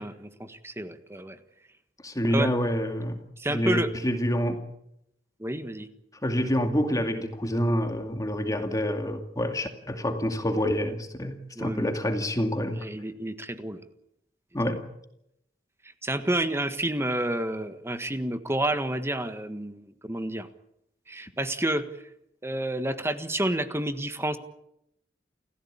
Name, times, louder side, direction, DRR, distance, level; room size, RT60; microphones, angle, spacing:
voice 1, 0.0-1.4 2.3-2.5 3.4-3.9 5.4-5.9 11.6-11.9 12.8-13.8 16.0-20.5 21.1-21.9 22.4-24.4, right 1 dB, 15° right, 10 dB, 1.5 m, -29 dB
voice 2, 2.0-3.2 3.5-4.6 6.2-12.9 14.5-14.8, equal, 20° left, 5 dB, 2.3 m, -27 dB
29.5 x 15.0 x 8.7 m, 0.79 s
head